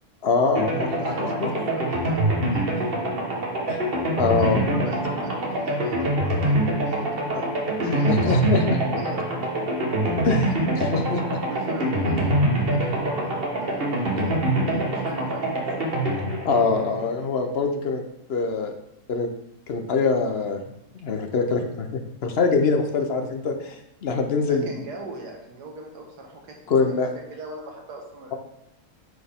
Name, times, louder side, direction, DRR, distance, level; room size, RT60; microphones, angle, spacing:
voice 1, 0.2-1.5 3.7-3.8 4.2-4.6 7.3-7.4 7.9-8.8 10.2-11.4 14.1-14.7 16.4-18.0 18.3-18.7 19.1-19.3 19.7-20.6 21.0-23.7 24.0-24.7 26.7-27.1, left 4 dB, 50° left, 4 dB, 0.8 m, -24 dB
sound 1, 0.5-17.5, right 1 dB, 40° right, 1.4 m, -25 dB
voice 2, 1.0-3.1 4.3-8.5 8.7-9.3 11.5-14.3 14.6-15.7 24.5-28.4, right 2 dB, 85° right, 1 dB, 1.8 m, -40 dB
9.2 x 4.5 x 3.5 m, 0.80 s
omnidirectional pair, 1.7 m